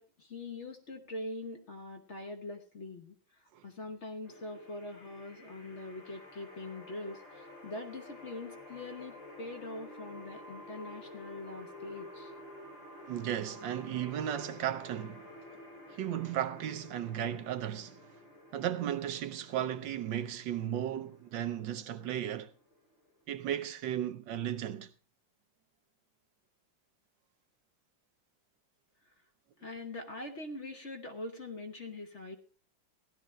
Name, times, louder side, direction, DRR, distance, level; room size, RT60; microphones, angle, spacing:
voice 1, 0.0-12.3 29.1-29.2 29.6-32.4, left 2 dB, 40° left, 1.2 m, -43 dB
sound 1, 4.2-23.2, left 1 dB, 70° left, 6.9 m, -51 dB
voice 2, 13.1-15.3 16.0-18.0 18.5-22.5 23.3-24.9, right 10 dB, 70° right, 1.4 m, -35 dB
15.5 x 11.5 x 3.2 m
omnidirectional pair, 2.1 m